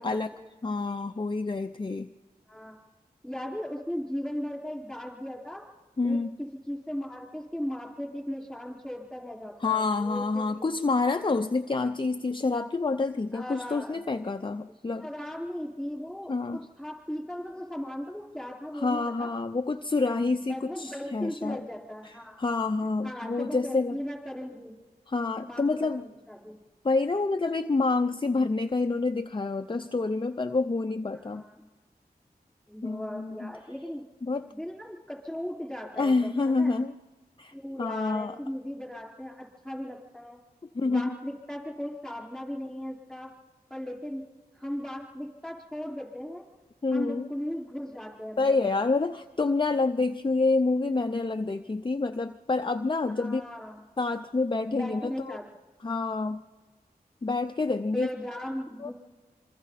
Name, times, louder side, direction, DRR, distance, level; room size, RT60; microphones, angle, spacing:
voice 1, 0.0-0.5 2.5-2.8 3.2-5.6 6.0-10.7 11.3-11.4 13.3-14.0 15.0-19.3 20.5-22.4 23.0-24.7 25.4-26.6 31.1-31.7 32.7-34.1 34.5-36.8 37.5-40.4 40.8-43.3 43.7-44.3 44.5-46.4 46.9-48.8 53.1-53.8 54.7-55.5 57.8-58.9, equal, ahead, -1 dB, 4.7 m, -37 dB
voice 2, 0.6-2.1 6.0-6.4 9.6-15.1 16.3-16.6 18.7-21.6 22.0-24.0 25.1-26.0 26.8-31.4 32.8-33.5 34.2-34.4 36.0-36.9 37.4-38.3 40.7-41.1 46.8-47.3 48.4-53.4 54.0-55.4 55.8-56.4 57.2-58.1 58.8-58.9, left 3 dB, 30° left, 7 dB, 0.6 m, -28 dB
26.5 x 23.5 x 4.2 m, 1.3 s
cardioid pair, 45°, 16 cm